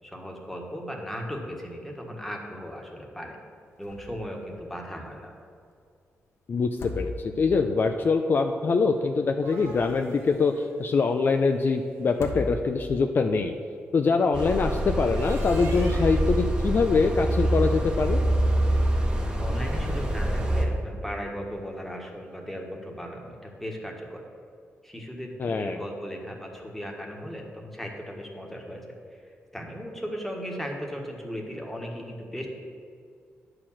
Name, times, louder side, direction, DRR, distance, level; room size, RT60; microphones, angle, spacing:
voice 1, 0.0-3.4 3.8-5.3 19.3-24.2 24.8-29.2 29.5-32.5, equal, 5° left, 0 dB, 1.6 m, -37 dB
sound 1, 3.8-4.3 4.6-4.7 6.6-7.6 9.3-10.2 12.0-13.0, left 2 dB, 75° left, 1.3 m, -37 dB
voice 2, 7.0-13.5 13.9-18.2 25.4-25.8, left 4 dB, 50° left, 5 dB, 0.5 m, -24 dB
sound 2, 9.1-12.2 14.9-16.4 19.4-20.3, right 2 dB, 80° right, 2.0 m, -47 dB
sound 3, 14.3-20.7, right 1 dB, 20° right, 1.3 m, -25 dB
10.5 x 4.9 x 7.3 m, 2.3 s
cardioid pair, 110°, 5 cm